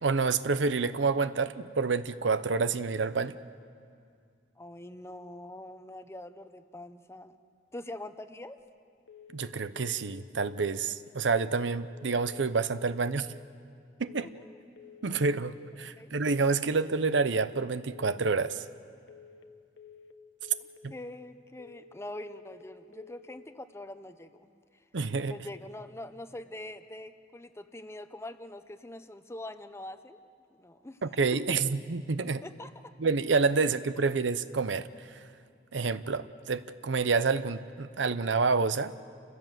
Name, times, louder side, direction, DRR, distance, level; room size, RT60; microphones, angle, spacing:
voice 1, 0.0-3.4 9.3-13.3 14.0-14.3 15.0-18.6 20.8-20.9 24.9-25.3 31.0-32.4 33.0-34.9 35.7-38.9, right 4 dB, 75° right, 13 dB, 0.7 m, -28 dB
voice 2, 4.6-7.3 7.7-8.6 14.2-14.3 15.9-16.1 20.9-24.5 25.3-30.2 30.5-31.0 31.3-31.6 32.4-32.9 33.5-33.7, left 1 dB, 15° left, 10 dB, 0.8 m, -43 dB
sound 1, 9.1-9.5 9.8-10.2 10.4-10.8 11.6-12.0 12.3-12.7 12.9-13.3 14.1-14.5 14.8-15.2 15.4-15.8 16.6-17.0 17.3-17.7 17.9-18.3 19.1-19.5 19.8-20.2 20.4-20.8 21.6-22.0 22.3-22.7 22.9-23.3, left 6 dB, 90° left, 1.1 m, -52 dB
29.0 x 16.0 x 7.6 m, 2.3 s
head